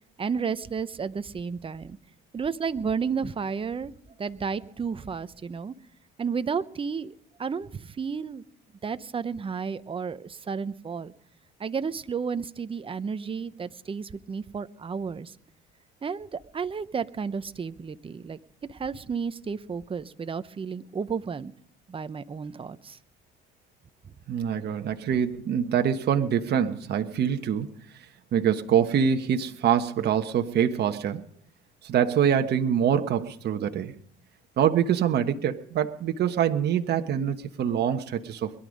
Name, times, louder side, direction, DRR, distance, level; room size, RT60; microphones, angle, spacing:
voice 1, 0.2-2.0 2.3-3.9 4.2-5.7 6.2-7.1 7.4-8.4 8.8-11.1 11.6-15.3 16.0-18.4 18.7-21.5 21.9-23.0, right 6 dB, 25° right, 12 dB, 0.8 m, -32 dB
voice 2, 24.3-27.7 28.3-31.2 31.8-33.9 34.6-38.5, right 8 dB, 55° right, 6 dB, 1.2 m, -25 dB
22.0 x 11.5 x 5.2 m, 0.66 s
cardioid pair, 100°, 21 cm